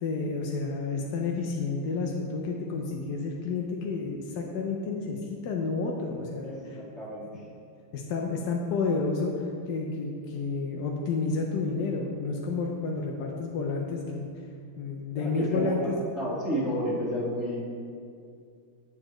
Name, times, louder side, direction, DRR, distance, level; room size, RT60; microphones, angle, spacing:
voice 1, 0.0-6.8 7.9-14.3 14.8-15.9, left 4 dB, 70° left, 0 dB, 1.0 m, -30 dB
voice 2, 6.7-7.4 15.2-15.7 16.2-17.6, equal, ahead, -10 dB, 1.4 m, -31 dB
8.5 x 6.8 x 3.0 m, 2.4 s
omnidirectional pair, 2.2 m